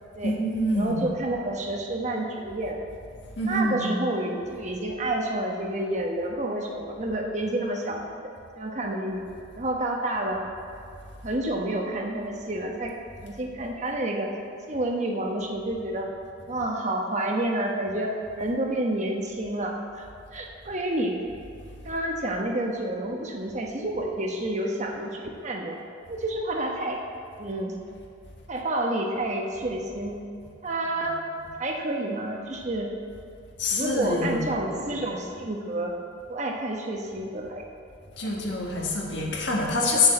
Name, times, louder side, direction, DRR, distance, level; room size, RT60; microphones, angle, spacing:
voice 1, 0.2-1.0 3.4-3.9 31.0-31.1 33.6-34.6 38.1-40.1, left 2 dB, 65° left, -2 dB, 1.7 m, -26 dB
voice 2, 0.7-2.8 3.4-9.2 9.5-10.4 11.2-12.9 13.2-14.3 14.7-16.1 16.5-20.1 20.3-21.2 21.8-25.8 26.1-27.0 27.4-27.7 28.5-30.2 30.6-31.2 31.6-32.9 33.7-35.9 36.3-37.6 38.2-38.3 39.2-39.4, right 1 dB, 40° right, 1 dB, 1.1 m, -29 dB
7.4 x 6.9 x 7.6 m, 2.3 s
head